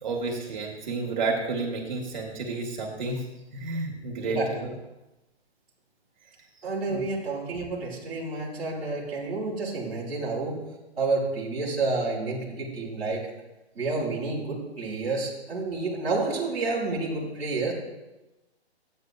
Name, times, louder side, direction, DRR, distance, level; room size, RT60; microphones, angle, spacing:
voice 1, 0.0-3.3 3.5-4.7 6.9-7.1, right 3 dB, 45° right, -1 dB, 1.6 m, -31 dB
voice 2, 6.6-10.6 11.0-13.2 13.7-17.7, right 3 dB, ahead, -21 dB, 0.4 m, -29 dB
13.0 x 8.9 x 2.4 m, 1.0 s
hypercardioid pair, 170°, 33 cm